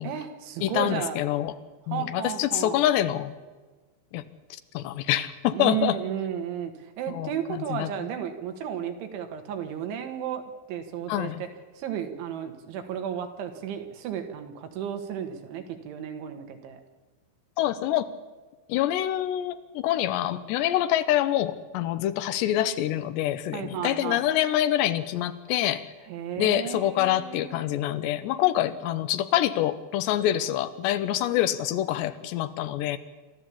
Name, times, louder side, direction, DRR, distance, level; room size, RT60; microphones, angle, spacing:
voice 1, 0.0-1.2 1.9-2.9 5.5-10.4 10.7-11.5 11.8-16.8 23.5-24.3 26.1-27.7, right 9 dB, 75° right, 6 dB, 4.1 m, -33 dB
voice 2, 0.6-1.5 1.9-3.3 4.1-4.2 4.7-6.0 7.1-7.9 11.1-11.4 17.6-18.1 18.7-25.8 26.4-33.0, left 12 dB, 75° left, 12 dB, 2.9 m, -26 dB
27.5 x 13.0 x 8.6 m, 1.3 s
omnidirectional pair, 5.5 m